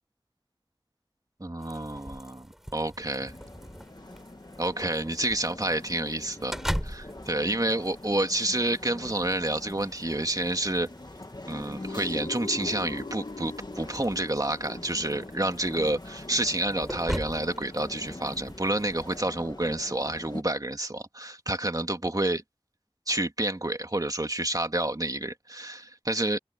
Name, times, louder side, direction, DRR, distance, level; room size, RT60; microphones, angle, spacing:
voice 1, 1.4-2.5 2.7-3.3 4.6-10.9 11.5-22.4 23.1-26.4, right 1 dB, 40° right, 2.2 m, -29 dB
sound 1, 1.6-19.2, equal, 5° right, 7.2 m, -41 dB
sound 2, 3.1-20.4, left 1 dB, 45° left, 1.8 m, -44 dB
sound 3, 11.8-16.5, left 3 dB, 80° left, 0.7 m, -41 dB
wide cardioid pair, 40°, 10 cm